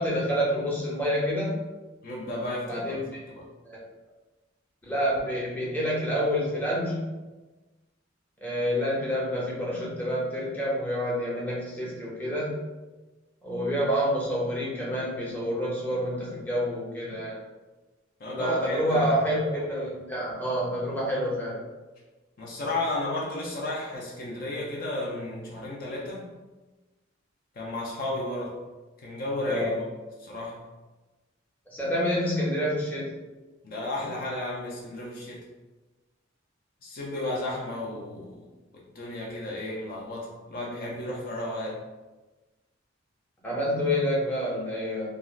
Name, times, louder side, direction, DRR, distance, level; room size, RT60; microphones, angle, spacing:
voice 1, 0.0-1.6 2.7-3.2 3.6-3.8 4.8-7.1 8.4-12.6 13.4-17.4 18.3-21.6 29.4-29.7 31.7-33.2 43.4-45.1, equal, 10° left, -6 dB, 0.7 m, -28 dB
voice 2, 2.0-2.9 3.3-3.5 18.2-19.1 22.4-26.3 27.6-28.6 29.0-29.8 30.2-30.6 33.6-35.4 36.8-38.5 38.9-41.8, left 2 dB, 50° left, -3 dB, 0.5 m, -33 dB
3.2 x 2.3 x 2.4 m, 1.2 s
head